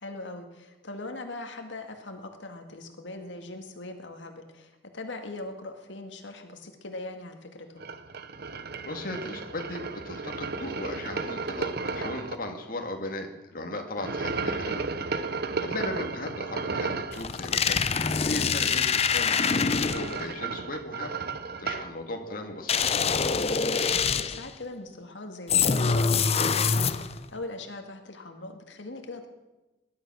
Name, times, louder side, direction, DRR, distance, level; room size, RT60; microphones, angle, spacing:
voice 1, 0.0-7.9 15.5-15.8 23.8-29.3, left 2 dB, 85° left, 4 dB, 1.9 m, -41 dB
sound 1, 7.8-12.4 14.0-17.2 19.3-21.9, right 4 dB, 60° right, 1.0 m, -33 dB
voice 2, 8.8-14.9 15.6-17.8 18.2-21.1 21.6-23.2, left 2 dB, 50° left, 3 dB, 2.1 m, -37 dB
sound 2, 17.1-20.3 22.7-24.5 25.5-27.2, left 5 dB, 35° left, 0.7 m, -25 dB
19.5 x 11.5 x 6.3 m, 1.1 s
head